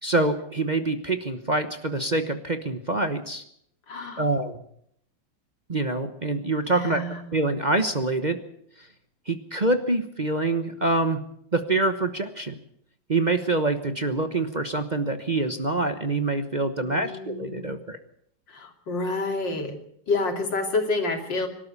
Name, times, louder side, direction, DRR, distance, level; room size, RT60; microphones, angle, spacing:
voice 1, 0.0-3.4 4.2-4.6 5.7-7.0 7.3-8.4 8.8-8.9 9.3-11.2 11.5-12.6 13.1-18.0, right 2 dB, 30° right, 8 dB, 1.0 m, -25 dB
voice 2, 3.9-4.3 6.7-7.3 16.8-17.7 18.5-19.8 20.1-21.5, left 3 dB, 85° left, 4 dB, 3.6 m, -29 dB
24.5 x 12.5 x 8.4 m, 0.71 s
omnidirectional pair, 1.9 m